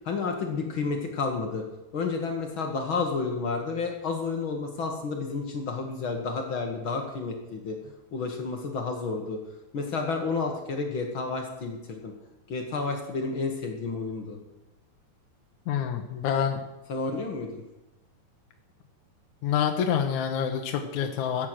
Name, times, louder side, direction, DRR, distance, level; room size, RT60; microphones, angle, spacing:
voice 1, 0.0-1.6 1.9-7.8 8.1-9.4 9.7-12.1 12.5-14.4 16.9-17.6, left 4 dB, 50° left, 3 dB, 1.5 m, -31 dB
voice 2, 15.7-16.6 19.4-21.5, left 8 dB, 70° left, 3 dB, 2.0 m, -27 dB
14.5 x 8.9 x 6.2 m, 0.99 s
omnidirectional pair, 4.3 m